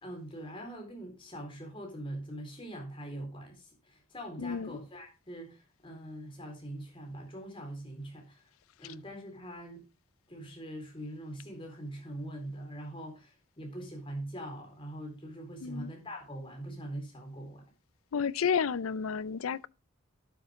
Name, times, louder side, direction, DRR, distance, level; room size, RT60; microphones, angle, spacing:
voice 1, 0.0-8.5 8.8-9.9 10.3-17.6, right 1 dB, 25° left, 4.1 m, -43 dB
voice 2, 4.4-4.8 15.6-15.9 18.1-19.7, left 6 dB, 90° left, 0.5 m, -31 dB
12.5 x 7.8 x 3.6 m
head